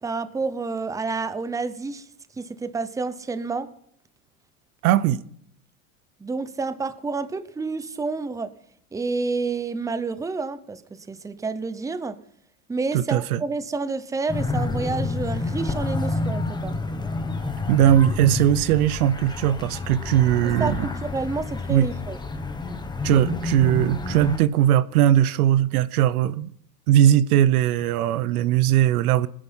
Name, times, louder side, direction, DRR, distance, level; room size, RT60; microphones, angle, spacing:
voice 1, 0.0-2.1 2.4-3.7 6.2-8.5 8.9-12.2 12.7-16.8 20.4-22.2, right 4 dB, 10° right, 0.7 m, -29 dB
voice 2, 4.8-5.2 12.9-13.4 17.7-20.9 21.7-21.9 23.0-26.5 26.9-29.3, right 11 dB, 85° right, 0.8 m, -19 dB
sound 1, 14.3-24.4, left 3 dB, 10° left, 1.1 m, -29 dB
19.5 x 10.0 x 5.6 m
supercardioid pair, 125°, 43 cm